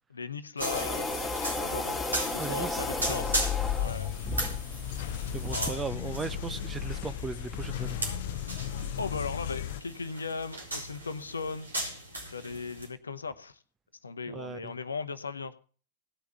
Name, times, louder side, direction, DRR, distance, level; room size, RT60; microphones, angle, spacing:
voice 1, 0.1-2.0 2.3-3.5 3.8-4.1 5.5-6.1 9.0-11.7 12.3-13.6 14.0-15.5, left 4 dB, 75° left, 0.9 m, -37 dB
sound 1, 0.6-5.7, left 2 dB, 15° left, 2.1 m, -34 dB
sound 2, 0.6-12.9, right 1 dB, 80° right, 4.1 m, -38 dB
voice 2, 2.4-3.2 5.0-8.0 14.3-14.8, right 5 dB, 15° right, 0.8 m, -38 dB
sound 3, 2.9-9.8, left 10 dB, 55° left, 0.6 m, -35 dB
17.5 x 5.9 x 6.7 m
figure-of-eight pair, 90°, 0 cm